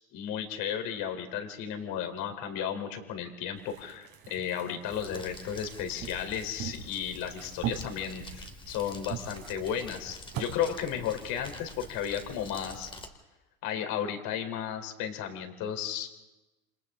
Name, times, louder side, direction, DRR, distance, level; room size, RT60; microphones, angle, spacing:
voice 1, 0.1-12.9 13.6-16.1, left 8 dB, 50° left, 6 dB, 4.0 m, -34 dB
sound 1, 3.6-10.5, right 10 dB, 45° right, 3.7 m, -42 dB
Crumpling crinkling, 4.9-13.1, left 1 dB, 10° left, 2.6 m, -47 dB
28.5 x 26.5 x 3.8 m, 1.1 s
hypercardioid pair, 100°, 43 cm